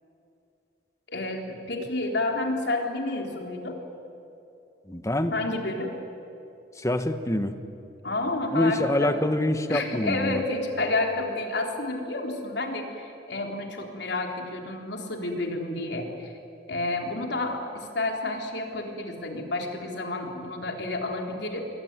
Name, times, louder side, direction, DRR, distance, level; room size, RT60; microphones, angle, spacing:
voice 1, 1.1-3.8 5.3-6.0 8.0-9.2 9.7-16.3 16.7-21.6, left 2 dB, 65° left, 2 dB, 3.8 m, -30 dB
voice 2, 4.9-5.3 6.8-7.5 8.5-10.4, left 1 dB, 15° left, 9 dB, 1.3 m, -25 dB
27.0 x 22.0 x 9.7 m, 2.8 s
head